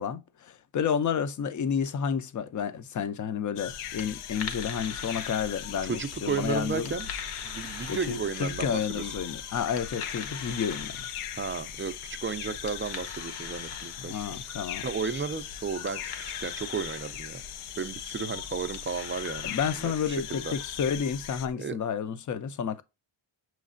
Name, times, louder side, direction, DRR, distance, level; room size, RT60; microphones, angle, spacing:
voice 1, 0.0-6.9 7.9-11.1 14.1-14.9 19.4-22.8, left 7 dB, 40° left, 0.5 m, -31 dB
sound 1, 3.6-21.5, left 9 dB, 85° left, 0.6 m, -39 dB
sound 2, 3.7-21.5, left 5 dB, 55° left, 0.9 m, -45 dB
voice 2, 5.8-7.1 7.4-9.0 11.4-14.2 14.8-16.1 16.4-17.4 17.8-20.5 21.6-21.8, right 5 dB, 25° right, 0.3 m, -33 dB
6.4 x 3.1 x 2.4 m
wide cardioid pair, 155°, 49 cm